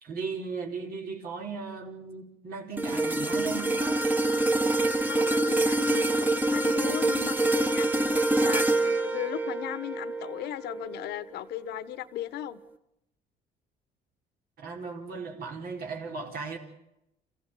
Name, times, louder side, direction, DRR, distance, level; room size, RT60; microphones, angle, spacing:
voice 1, 0.0-4.0 14.6-16.6, right 5 dB, 60° right, 4.6 m, -37 dB
sound 1, 2.8-11.1 11.6-11.8, right 2 dB, 10° right, 1.5 m, -26 dB
voice 2, 5.1-12.6, left 13 dB, 75° left, 1.3 m, -37 dB
29.0 x 15.5 x 9.2 m
cardioid pair, 110°, 17 cm